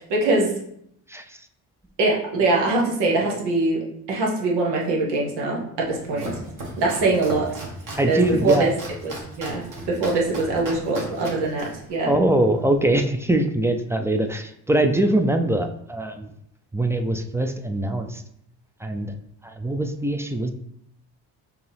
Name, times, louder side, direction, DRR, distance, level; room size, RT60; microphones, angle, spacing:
voice 1, 0.1-0.5 2.0-6.4 6.8-7.6 8.0-8.7 9.0-12.1, right 2 dB, 90° right, -1 dB, 1.0 m, -23 dB
voice 2, 1.1-1.5 7.9-8.7 12.0-16.3 16.7-18.2 18.8-19.1 19.4-20.5, right 1 dB, 5° right, 5 dB, 0.4 m, -22 dB
Domestic sounds home sounds, 5.8-12.8, right 1 dB, 50° right, 1.4 m, -36 dB
4.7 x 2.7 x 3.4 m, 0.72 s
supercardioid pair, 65°, 40 cm